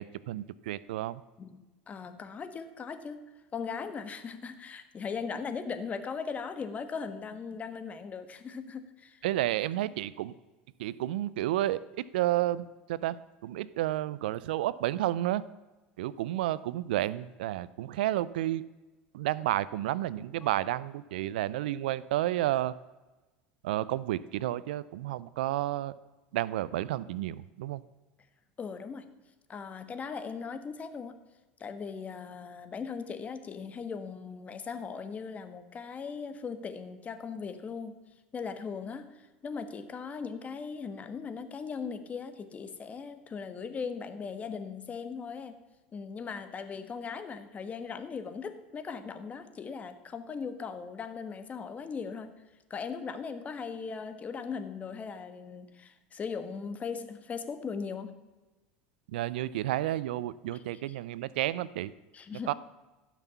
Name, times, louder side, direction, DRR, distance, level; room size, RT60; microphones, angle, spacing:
voice 1, 0.0-1.2 9.2-10.3 10.8-15.4 16.0-18.6 19.1-22.7 23.6-25.9 26.3-27.8 59.1-61.9 62.5-62.6, right 14 dB, 85° right, 18 dB, 0.5 m, -31 dB
voice 2, 1.4-3.2 3.5-9.2 20.4-20.5 28.6-29.0 29.5-31.2 31.6-38.0 38.3-45.6 45.9-52.3 52.7-58.2 62.1-62.5, left 5 dB, 30° left, 9 dB, 1.3 m, -39 dB
15.0 x 6.1 x 6.9 m, 1.1 s
supercardioid pair, 100°, 5 cm